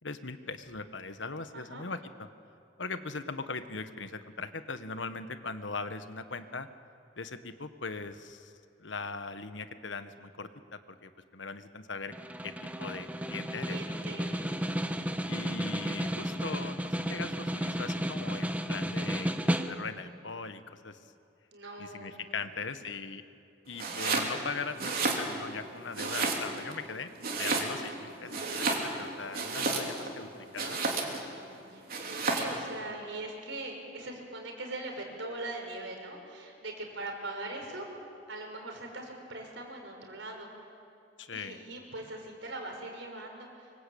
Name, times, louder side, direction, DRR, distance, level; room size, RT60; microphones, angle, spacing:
voice 1, 0.0-2.0 2.8-6.7 7.2-8.5 8.8-10.5 10.9-12.1 12.4-12.5 12.8-14.0 15.2-21.1 21.8-23.2 23.7-27.1 27.4-30.8 41.2-41.6, left 4 dB, 75° left, 10 dB, 1.4 m, -40 dB
voice 2, 1.5-1.8 13.6-14.5 21.5-22.3 31.7-37.9 38.3-40.7 41.3-43.7, right 2 dB, 80° right, 2 dB, 5.5 m, -41 dB
Snare drum, 12.1-20.1, equal, 10° right, 1.2 m, -33 dB
Domestic sounds home sounds, 23.7-24.3 24.7-25.6 25.9-26.7 27.2-28.0 28.3-30.1 30.6-31.3 31.9-32.6, right 3 dB, 55° right, 3.6 m, -31 dB
25.0 x 23.5 x 8.7 m, 2.5 s
head